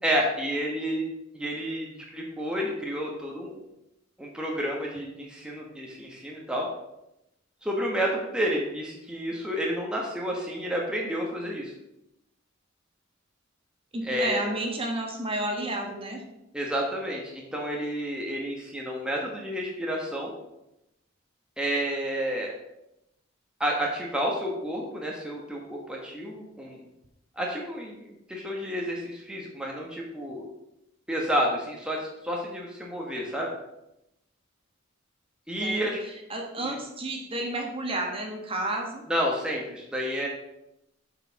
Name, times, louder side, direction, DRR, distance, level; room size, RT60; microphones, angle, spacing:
voice 1, 0.0-1.1 1.3-3.6 4.2-6.7 7.6-11.7 14.0-14.4 16.5-20.3 21.6-22.5 23.6-26.8 27.4-30.4 31.1-33.6 35.5-36.0 36.6-36.7 39.1-40.3, equal, 5° right, -2 dB, 1.2 m, -30 dB
voice 2, 13.9-16.2 35.6-36.0 36.3-39.0, right 1 dB, 25° right, 1 dB, 1.3 m, -31 dB
7.7 x 4.9 x 5.7 m, 0.87 s
head